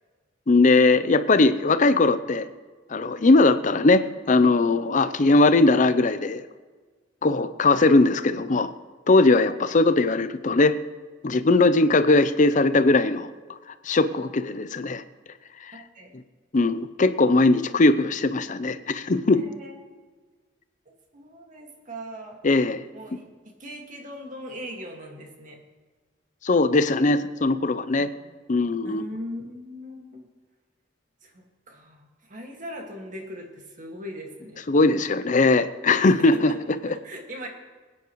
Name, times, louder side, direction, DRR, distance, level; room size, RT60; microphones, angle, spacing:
voice 1, 0.5-2.5 2.9-6.4 7.2-8.7 9.1-10.8 11.2-13.3 13.8-15.0 15.6-15.7 16.5-19.4 22.4-22.8 26.4-28.1 28.5-29.0 34.7-36.9, left 3 dB, 40° left, 12 dB, 0.6 m, -20 dB
voice 2, 15.7-16.1 19.3-19.8 20.9-22.4 22.9-25.6 28.0-28.4 28.8-30.3 31.2-34.6 36.1-36.6 37.0-37.5, equal, 45° right, 2 dB, 2.0 m, -40 dB
20.5 x 9.5 x 3.1 m, 1.4 s
head